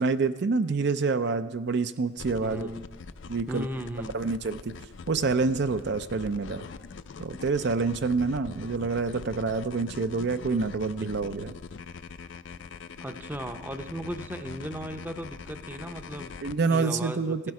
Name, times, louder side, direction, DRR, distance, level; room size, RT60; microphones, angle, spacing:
voice 1, 0.0-2.7 3.3-3.6 4.1-4.7 5.1-6.7 7.2-11.5 16.4-17.5, right 4 dB, 60° right, 10 dB, 0.5 m, -27 dB
sound 1, 2.2-16.5, left 5 dB, 65° left, 0.5 m, -43 dB
voice 2, 2.4-2.9 3.5-4.2 13.0-16.4 16.7-17.5, equal, 10° right, 7 dB, 0.6 m, -36 dB
16.0 x 12.0 x 4.8 m, 1.3 s
head